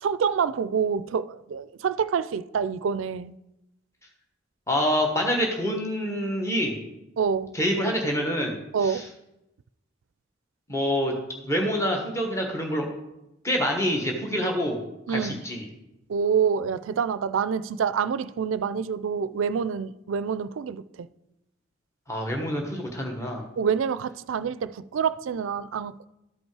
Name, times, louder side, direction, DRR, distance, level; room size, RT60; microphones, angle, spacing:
voice 1, 0.0-3.3 7.2-7.5 8.7-9.1 15.1-15.4 16.1-21.1 23.6-26.1, right 6 dB, 75° right, 0.4 m, -27 dB
voice 2, 4.7-6.8 7.5-8.6 8.8-9.1 10.7-11.1 11.4-12.9 13.4-14.8 15.1-15.6 22.1-23.4, equal, 15° left, 1.2 m, -26 dB
13.0 x 5.4 x 4.7 m
head